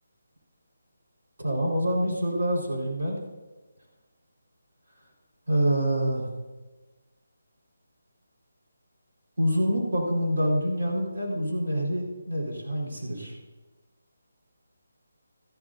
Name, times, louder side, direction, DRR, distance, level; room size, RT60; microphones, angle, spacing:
voice 1, 1.4-3.2 5.5-6.3 9.4-13.3, equal, 65° right, -3 dB, 4.3 m, -26 dB
14.0 x 12.0 x 2.7 m, 1.2 s
hypercardioid pair, 175°, 0 cm